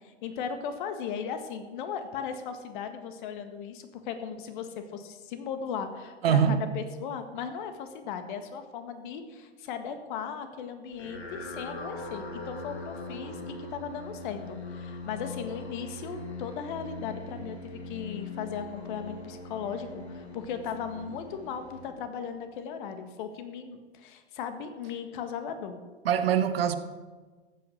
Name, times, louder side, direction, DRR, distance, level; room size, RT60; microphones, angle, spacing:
voice 1, 0.0-25.8, left 7 dB, 50° left, 1.8 m, -37 dB
voice 2, 6.2-6.7 26.0-26.8, right 8 dB, 65° right, 1.1 m, -23 dB
sound 1, 10.9-22.4, left 2 dB, 90° left, 2.1 m, -41 dB
14.5 x 8.1 x 6.4 m
hypercardioid pair, 105°, 32 cm